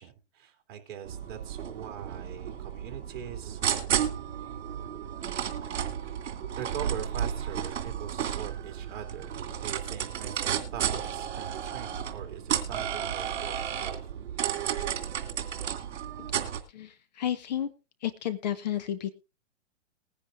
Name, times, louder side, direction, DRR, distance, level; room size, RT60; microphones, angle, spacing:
voice 1, 0.0-3.6 6.6-14.0, right 9 dB, 40° right, 5 dB, 2.9 m, -42 dB
sound 1, 1.0-16.6, right 9 dB, 60° right, 2.5 m, -33 dB
voice 2, 16.7-17.7 18.0-19.1, left 10 dB, 35° left, 13 dB, 0.7 m, -32 dB
20.5 x 10.0 x 2.5 m, 0.29 s
hypercardioid pair, 155°, 38 cm